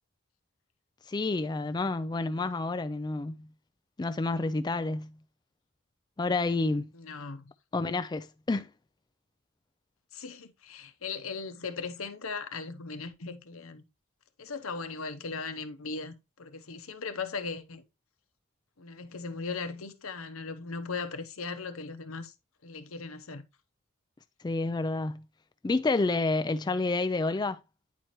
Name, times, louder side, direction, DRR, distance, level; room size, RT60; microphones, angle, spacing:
voice 1, 1.1-3.5 4.0-5.1 6.2-6.9 7.7-8.7 24.4-25.2 25.6-27.6, left 3 dB, 20° left, 0.3 m, -29 dB
voice 2, 6.9-7.5 10.1-13.8 14.4-17.8 18.8-22.3 22.6-23.4, left 4 dB, 90° left, 0.9 m, -38 dB
9.3 x 4.4 x 3.0 m
head